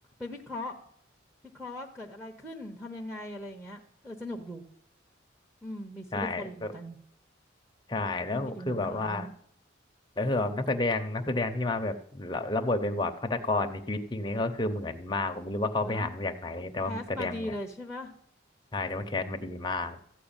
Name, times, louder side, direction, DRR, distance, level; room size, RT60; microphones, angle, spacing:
voice 1, 0.2-0.8 1.5-4.6 5.6-7.0 8.3-9.3 15.8-16.1 16.8-18.1, left 1 dB, 5° right, 1 dB, 0.9 m, -39 dB
voice 2, 6.1-6.7 7.9-9.3 10.2-17.6 18.7-20.0, left 2 dB, 25° left, 5 dB, 0.8 m, -30 dB
14.0 x 4.7 x 8.9 m, 0.72 s
head